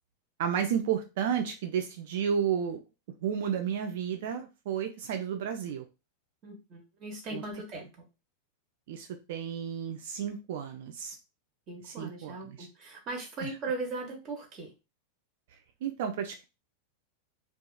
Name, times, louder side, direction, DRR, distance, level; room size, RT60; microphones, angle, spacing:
voice 1, 0.4-2.8 3.2-5.8 7.3-7.4 8.9-11.2 11.9-12.7 13.4-13.5 15.8-16.4, right 8 dB, 55° right, 5 dB, 0.3 m, -32 dB
voice 2, 6.4-7.9 11.7-14.7, right 3 dB, 35° right, 0 dB, 1.0 m, -38 dB
2.8 x 2.3 x 2.2 m, 0.27 s
figure-of-eight pair, 90°, 0 cm